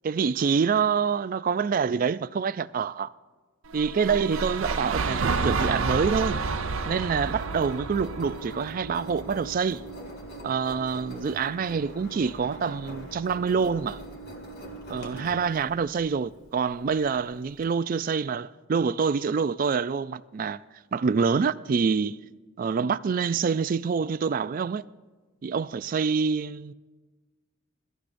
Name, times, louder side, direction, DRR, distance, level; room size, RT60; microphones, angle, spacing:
voice 1, 0.0-3.1 3.7-6.4 6.9-9.8 10.4-14.0 14.9-20.6 20.9-22.2 22.6-24.8 25.4-26.7, right 5 dB, 40° right, 0.3 m, -26 dB
sound 1, 3.7-9.9, right 4 dB, 75° right, 0.6 m, -30 dB
Engine, 5.9-17.6, right 2 dB, 50° left, 2.0 m, -43 dB
22.5 x 13.0 x 2.6 m
head